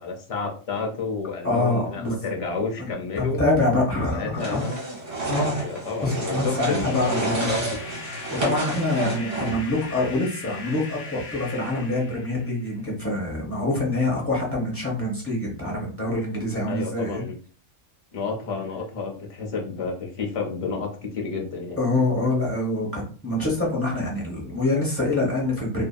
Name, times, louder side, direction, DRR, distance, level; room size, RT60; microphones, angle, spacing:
voice 1, 0.0-3.4 3.9-4.8 5.5-7.8 16.7-17.4 18.1-21.8, left 4 dB, 50° left, 0 dB, 0.4 m, -30 dB
voice 2, 1.4-2.3 2.8-2.9 3.2-4.6 5.3-5.6 6.0-7.7 8.1-17.2 21.8-25.9, left 2 dB, 15° left, -4 dB, 0.7 m, -25 dB
sound 1, 4.4-9.8, right 2 dB, 50° right, 1.3 m, -30 dB
sound 2, 5.8-12.8, left 4 dB, 65° left, 1.0 m, -40 dB
2.7 x 2.6 x 2.2 m, 0.40 s
omnidirectional pair, 1.4 m